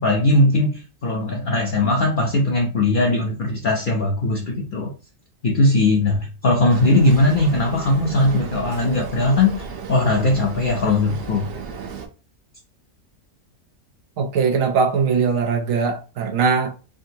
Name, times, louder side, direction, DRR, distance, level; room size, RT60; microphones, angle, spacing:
voice 1, 0.0-4.9 5.4-11.5, left 2 dB, 50° left, 0.6 m, -19 dB
Boat Water vehicle, 6.7-12.1, right 5 dB, 60° right, 0.7 m, -34 dB
voice 2, 14.2-16.7, right 5 dB, 85° right, 1.1 m, -20 dB
3.6 x 2.5 x 2.7 m
omnidirectional pair, 1.3 m